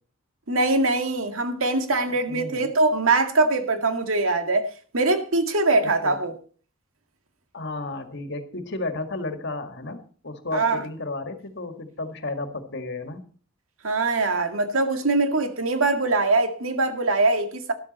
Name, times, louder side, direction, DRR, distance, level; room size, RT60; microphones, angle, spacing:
voice 1, 0.5-4.7 4.9-6.3 10.5-10.8 13.8-17.7, right 2 dB, 80° right, 2.0 m, -22 dB
voice 2, 2.0-2.7 5.8-6.2 7.5-13.2, left 2 dB, 55° left, 1.9 m, -33 dB
13.0 x 12.0 x 4.2 m
head